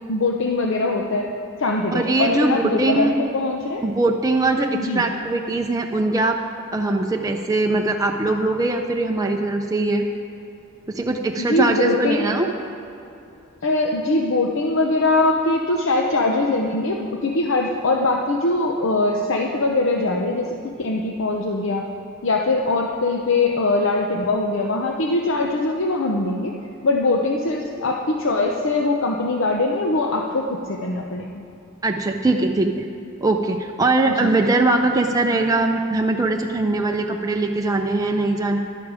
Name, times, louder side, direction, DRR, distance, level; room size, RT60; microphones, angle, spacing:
voice 1, 0.1-1.3 1.6-3.8 4.7-5.1 11.4-12.4 13.6-21.8 22.2-26.5 26.8-31.3 34.1-34.3, left 2 dB, 65° left, 1 dB, 0.8 m, -22 dB
voice 2, 1.9-3.1 3.8-6.4 6.7-10.0 10.9-12.5 31.8-32.9 33.2-38.6, right 2 dB, 15° right, 2 dB, 0.5 m, -21 dB
12.5 x 11.0 x 4.9 m, 2.8 s
head